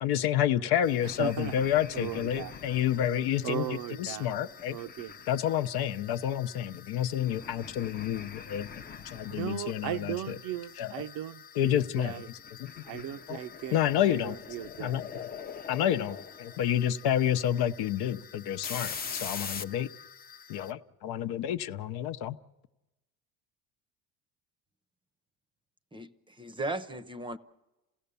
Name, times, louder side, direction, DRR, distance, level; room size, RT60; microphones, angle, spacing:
voice 1, 0.0-4.8 5.3-10.3 10.8-10.9 11.6-13.4 13.7-14.4 14.8-15.2 15.7-19.9 20.5-22.4, left 10 dB, 60° left, 0.9 m, -29 dB
sound 1, 0.8-20.7, left 6 dB, 20° left, 0.7 m, -44 dB
voice 2, 1.0-1.6 1.9-2.5 3.4-4.4 4.7-5.1 9.3-12.3 12.9-13.8 14.0-15.0, right 12 dB, 50° right, 0.7 m, -37 dB
voice 3, 25.9-27.4, right 2 dB, 10° right, 0.8 m, -36 dB
28.0 x 17.0 x 6.9 m
supercardioid pair, 115°, 44 cm